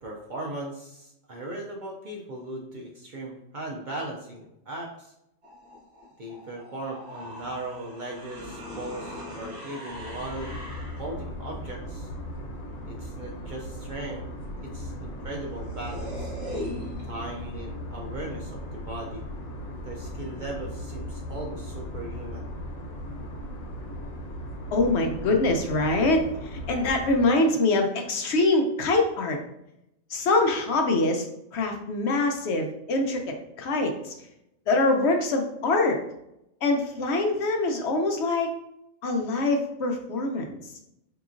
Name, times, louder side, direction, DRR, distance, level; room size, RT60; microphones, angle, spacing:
voice 1, 0.0-5.1 6.2-10.6 11.0-12.1 12.9-14.2 14.6-16.3 17.1-18.6 18.9-19.2 19.8-22.5, right 1 dB, 65° right, -1 dB, 0.5 m, -38 dB
sound 1, 5.4-11.2 15.0-15.1 15.3-17.3, left 1 dB, 45° right, 1.6 m, -40 dB
sound 2, 9.9-27.2, equal, 85° left, 1.1 m, -37 dB
voice 2, 24.7-29.4 30.1-31.3 31.5-34.1 34.7-36.0 36.6-38.5 39.0-40.6, left 2 dB, 65° left, 3 dB, 0.8 m, -24 dB
4.6 x 2.8 x 2.5 m, 0.82 s
omnidirectional pair, 1.4 m